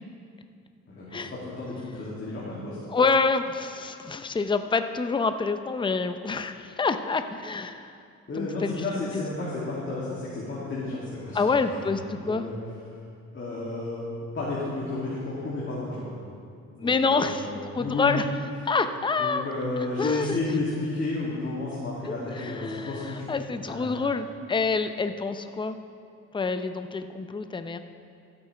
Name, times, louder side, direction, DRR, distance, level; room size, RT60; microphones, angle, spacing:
voice 1, 0.9-2.8 8.3-11.4 11.7-11.9 12.2-12.5 13.3-14.1 14.3-16.1 16.7-18.2 19.2-23.2 23.6-23.9, left 2 dB, 40° left, -8 dB, 2.5 m, -32 dB
voice 2, 2.9-7.9 8.4-8.8 9.1-9.3 11.3-12.4 16.8-17.5 17.7-18.3 18.6-19.4 20.0-20.4 22.0-25.8 26.3-27.8, left 4 dB, 15° left, 9 dB, 0.5 m, -27 dB
15.0 x 8.6 x 3.3 m, 2.4 s
cardioid pair, 90°, 30 cm